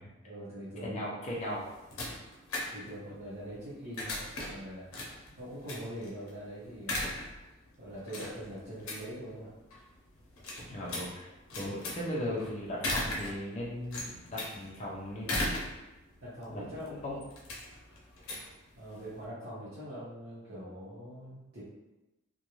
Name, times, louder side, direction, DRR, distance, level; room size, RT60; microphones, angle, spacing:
voice 1, 0.2-1.1 2.7-4.9 5.4-7.1 7.8-9.5 16.2-17.0 18.8-21.6, equal, 50° right, -11 dB, 0.8 m, -43 dB
voice 2, 0.8-1.7 10.7-15.5 16.5-17.2, equal, 35° left, -4 dB, 0.5 m, -38 dB
sound 1, 1.3-19.2, left 1 dB, 90° left, 0.6 m, -39 dB
2.5 x 2.2 x 2.9 m, 1.0 s
head